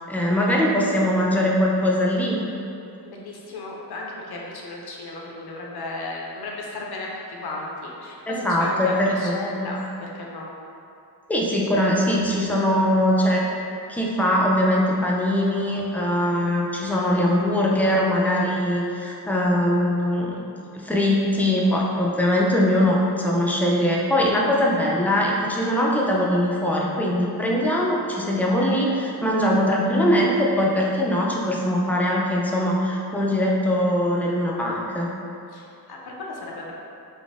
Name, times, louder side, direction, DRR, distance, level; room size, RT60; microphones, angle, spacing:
voice 1, 0.1-2.5 8.3-9.7 11.3-13.4 13.9-20.4 20.7-35.1, left 1 dB, 5° left, -3 dB, 0.4 m, -21 dB
voice 2, 3.0-10.5 35.5-36.7, left 2 dB, 70° left, -2 dB, 0.6 m, -35 dB
4.0 x 2.0 x 3.5 m, 2.6 s
wide cardioid pair, 100°, 40 cm